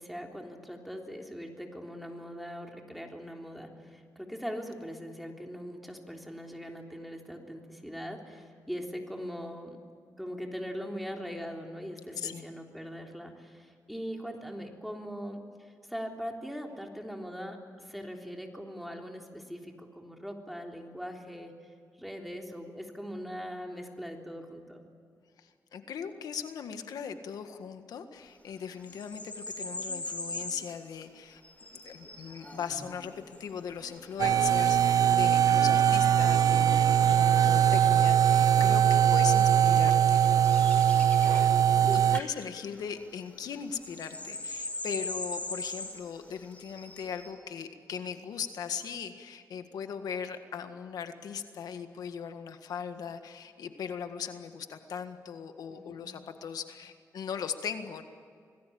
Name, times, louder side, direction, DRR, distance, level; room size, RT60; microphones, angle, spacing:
voice 1, 0.0-9.8 10.2-15.4 15.9-21.5 22.0-24.8 35.6-35.9 41.4-42.1 55.7-56.1, equal, ahead, 1 dB, 3.5 m, -41 dB
voice 2, 25.4-31.4 31.7-40.4 41.9-58.0, left 7 dB, 90° left, 7 dB, 1.7 m, -39 dB
sound 1, 28.7-30.7 31.4-38.0 38.8-39.2 39.7-41.8 42.1-42.3 42.5-47.3, left 2 dB, 20° left, 5.9 m, -42 dB
sound 2, 34.2-42.2, right 9 dB, 70° right, 0.6 m, -22 dB
27.0 x 19.5 x 8.7 m, 2.2 s
wide cardioid pair, 110°, 6 cm